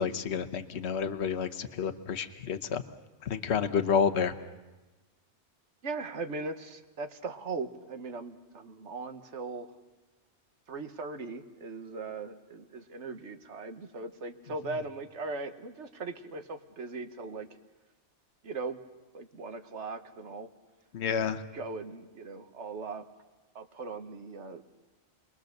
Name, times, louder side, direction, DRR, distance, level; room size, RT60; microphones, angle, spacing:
voice 1, 0.0-2.8 3.2-4.3 20.9-21.4, left 7 dB, 65° left, 8 dB, 1.2 m, -29 dB
voice 2, 5.8-9.7 10.7-17.5 18.4-18.8 19.1-20.5 21.1-23.0 23.5-24.6, right 3 dB, 75° right, 8 dB, 1.5 m, -39 dB
29.0 x 21.0 x 6.6 m, 1.2 s
omnidirectional pair, 1.2 m